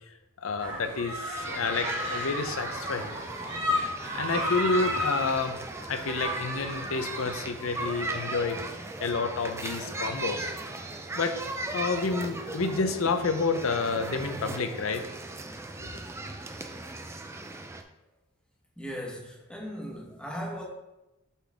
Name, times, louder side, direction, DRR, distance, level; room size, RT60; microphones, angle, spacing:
voice 1, 0.4-3.2 3.8-5.6 5.9-8.6 9.0-10.5 11.1-11.3 11.7-15.0 15.8-16.0, left 4 dB, 70° left, 8 dB, 0.6 m, -29 dB
sound 1, 0.6-8.7, left 1 dB, 60° right, 1.8 m, -34 dB
sound 2, 1.4-17.8, right 2 dB, 15° right, 0.4 m, -38 dB
voice 2, 18.8-20.6, equal, 5° left, -1 dB, 1.1 m, -37 dB
8.2 x 3.8 x 3.5 m, 0.97 s
head